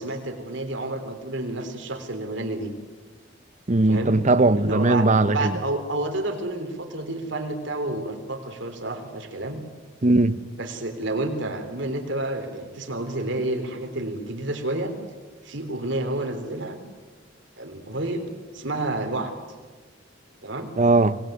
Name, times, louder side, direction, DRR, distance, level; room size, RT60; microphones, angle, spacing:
voice 1, 0.0-2.7 3.9-4.2 4.6-9.6 10.6-14.9 15.4-16.8 17.6-18.2 18.5-19.3 20.4-20.7, right 2 dB, 65° right, 3.8 m, -30 dB
voice 2, 3.7-5.5 10.0-10.4 20.8-21.2, right 2 dB, 40° right, 0.8 m, -19 dB
25.5 x 20.0 x 9.3 m
head